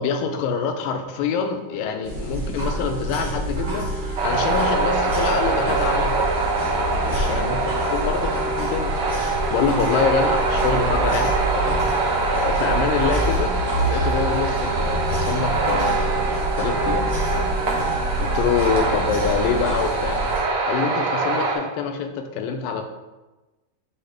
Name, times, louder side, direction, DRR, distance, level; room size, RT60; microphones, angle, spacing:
voice 1, 0.0-6.4 6.8-13.5 13.8-17.1 18.2-20.2 20.7-22.8, left 6 dB, 80° left, 6 dB, 2.3 m, -26 dB
sound 1, 1.5-18.0, right 3 dB, 90° right, 2.6 m, -34 dB
sound 2, 2.0-20.4, right 1 dB, 40° right, 1.0 m, -27 dB
sound 3, 4.2-21.5, right 3 dB, 55° right, 1.6 m, -24 dB
7.7 x 4.2 x 3.5 m, 1.1 s
omnidirectional pair, 4.0 m